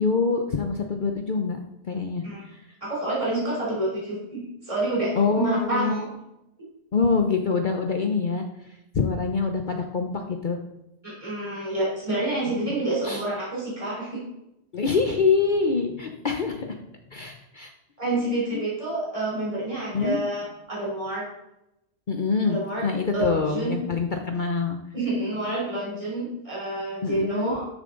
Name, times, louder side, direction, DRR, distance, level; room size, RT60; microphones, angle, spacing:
voice 1, 0.0-1.6 1.9-2.6 5.1-6.0 6.9-8.4 8.9-10.1 10.4-10.6 12.7-12.8 13.0-13.2 14.7-16.8 17.1-17.7 19.9-20.2 22.1-24.8 27.0-27.5, left 4 dB, 50° left, 4 dB, 0.9 m, -25 dB
voice 2, 2.8-6.1 6.6-6.7 11.0-14.2 18.0-21.3 22.4-22.9 23.1-23.8 24.9-27.6, right 1 dB, 30° right, -7 dB, 4.0 m, -28 dB
12.5 x 7.3 x 3.9 m, 0.90 s
omnidirectional pair, 1.2 m